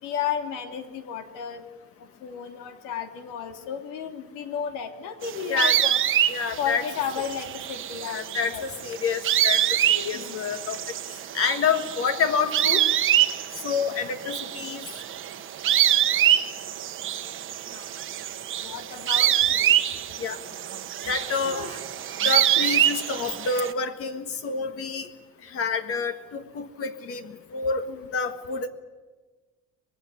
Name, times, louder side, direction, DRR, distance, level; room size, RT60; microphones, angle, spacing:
voice 1, 0.0-1.6 2.2-6.0 6.6-8.6 10.1-10.4 17.7-17.9 18.6-19.7 21.4-21.7 27.9-28.0, left 8 dB, 90° left, 6 dB, 2.9 m, -33 dB
sound 1, 5.2-23.7, right 11 dB, 40° right, 1.2 m, -25 dB
voice 2, 6.3-6.8 8.0-9.6 9.9-10.8 11.3-12.8 13.6-14.9 20.2-20.4 21.1-21.8 22.2-25.1 25.4-28.7, left 5 dB, 45° left, 8 dB, 1.5 m, -28 dB
24.5 x 20.0 x 9.7 m, 1.3 s
cardioid pair, 170°, 31 cm